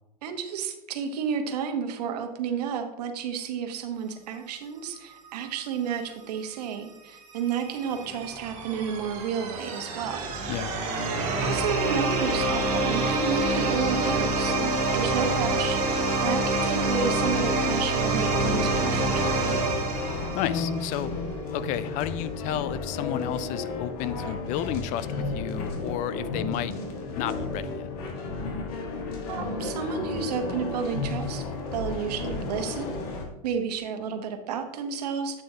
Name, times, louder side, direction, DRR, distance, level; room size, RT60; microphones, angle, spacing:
voice 1, 0.2-10.2 11.4-19.8 29.3-31.4 31.7-33.0 33.4-35.4, right 6 dB, 85° right, 7 dB, 1.1 m, -31 dB
sound 1, 7.1-20.9, right 2 dB, 35° right, 2.1 m, -27 dB
sound 2, 18.2-33.3, left 3 dB, 70° left, 1.7 m, -33 dB
voice 2, 20.3-21.1 21.5-26.7 27.1-27.9, left 12 dB, 40° left, 15 dB, 0.4 m, -32 dB
8.6 x 6.4 x 2.8 m, 0.96 s
supercardioid pair, 140°, 20 cm